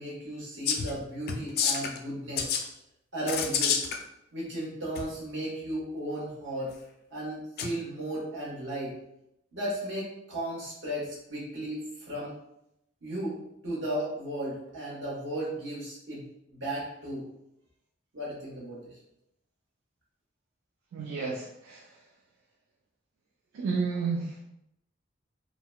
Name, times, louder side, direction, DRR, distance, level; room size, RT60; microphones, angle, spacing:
voice 1, 0.0-2.5 3.1-3.8 4.3-6.7 7.1-9.0 9.5-12.3 13.0-16.2 16.5-17.3 18.1-18.9, right 1 dB, 70° right, -6 dB, 1.2 m, -35 dB
sound 1, 0.7-1.0 1.3-2.0 2.4-2.6 3.3-4.0 5.0-5.1 7.6-7.7, left 7 dB, 55° left, 0.3 m, -28 dB
voice 2, 20.9-22.0 23.5-24.5, right 4 dB, 85° right, -1 dB, 0.4 m, -32 dB
3.7 x 2.1 x 2.2 m, 0.80 s
head